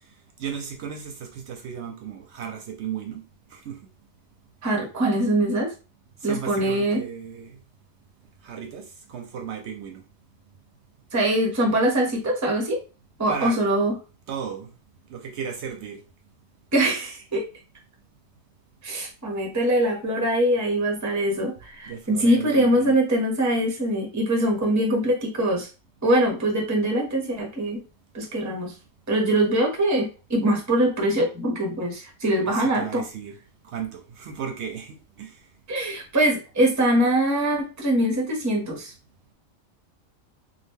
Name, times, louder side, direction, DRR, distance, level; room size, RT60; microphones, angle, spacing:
voice 1, 0.4-3.2 3.5-3.8 6.2-7.6 8.4-10.0 13.3-13.6 14.3-14.7 15.1-16.0 21.9-23.0 32.5-33.3 33.7-35.3, right 7 dB, 70° right, 4 dB, 0.8 m, -35 dB
voice 2, 4.6-5.7 6.2-7.0 11.1-12.8 13.2-13.9 16.7-17.4 18.8-25.7 26.0-27.8 28.1-28.7 29.1-33.0 35.7-38.9, right 1 dB, 20° right, 1 dB, 0.6 m, -23 dB
2.8 x 2.2 x 3.5 m, 0.32 s
omnidirectional pair, 1.3 m